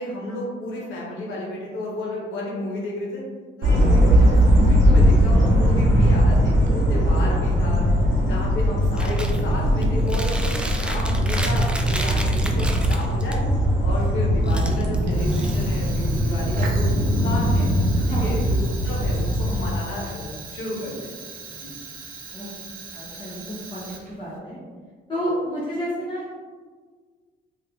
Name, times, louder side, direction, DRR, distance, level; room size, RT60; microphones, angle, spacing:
voice 1, 0.0-3.2 3.6-7.9 8.3-13.4 13.8-17.7 18.1-21.1 21.5-21.7, left 1 dB, 85° left, -3 dB, 0.9 m, -32 dB
sound 1, 3.6-19.7, equal, 70° right, 0.9 m, -20 dB
Chewing mastication, 9.0-9.4 9.8-13.4 14.4-16.0, right 1 dB, 5° right, 0.3 m, -33 dB
Fire, 15.1-24.4, right 4 dB, 45° right, 0.6 m, -39 dB
voice 2, 17.9-18.4 22.3-22.5 22.9-24.6 25.1-26.3, equal, 25° left, -8 dB, 0.9 m, -30 dB
3.0 x 2.4 x 3.6 m, 1.5 s
cardioid pair, 90°, 20 cm